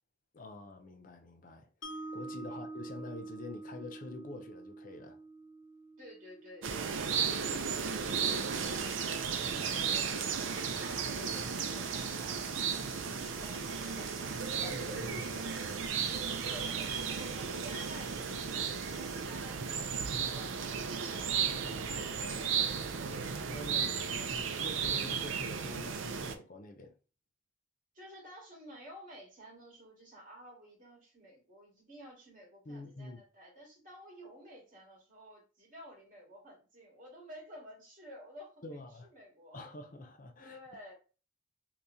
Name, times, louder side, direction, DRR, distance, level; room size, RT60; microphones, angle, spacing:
voice 1, 0.3-1.7 2.1-5.2 9.5-9.6 14.6-15.6 21.4-22.8 23.1-27.0 32.7-33.2 38.6-39.1 39.5-40.6, left 2 dB, 45° left, 0.5 m, -47 dB
Mallet percussion, 1.8-8.0, right 2 dB, 85° left, 0.7 m, -47 dB
voice 2, 6.0-8.8 9.4-14.4 16.4-21.2 23.0-23.2 27.9-39.7 40.4-40.9, equal, 45° right, 1.9 m, -53 dB
sound 1, 6.6-26.3, right 6 dB, 75° right, 0.5 m, -34 dB
sound 2, 8.2-19.3, equal, ahead, 1.0 m, -54 dB
3.5 x 2.9 x 2.7 m
head